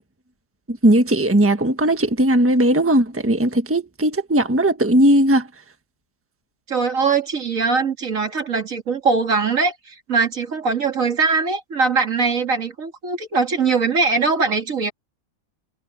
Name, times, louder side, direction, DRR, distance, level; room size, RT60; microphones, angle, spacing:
voice 1, 0.7-5.5, right 1 dB, 10° right, 1.4 m, -17 dB
voice 2, 6.7-14.9, right 4 dB, 70° right, 2.5 m, -21 dB
omnidirectional pair, 1.4 m